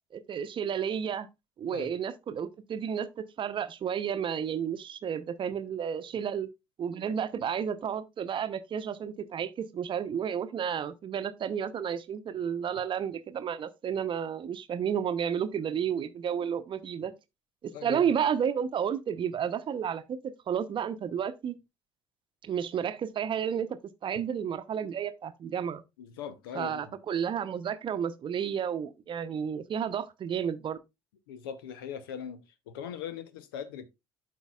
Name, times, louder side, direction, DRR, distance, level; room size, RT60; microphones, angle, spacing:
voice 1, 0.1-1.3 1.6-6.5 6.8-17.1 17.6-20.2 20.5-21.5 22.4-25.8 26.5-30.8, right 8 dB, 45° right, 0.8 m, -32 dB
voice 2, 17.7-18.0 26.0-26.9 31.3-33.9, left 8 dB, 75° left, 0.7 m, -40 dB
12.0 x 4.6 x 2.3 m
figure-of-eight pair, 50°, 12 cm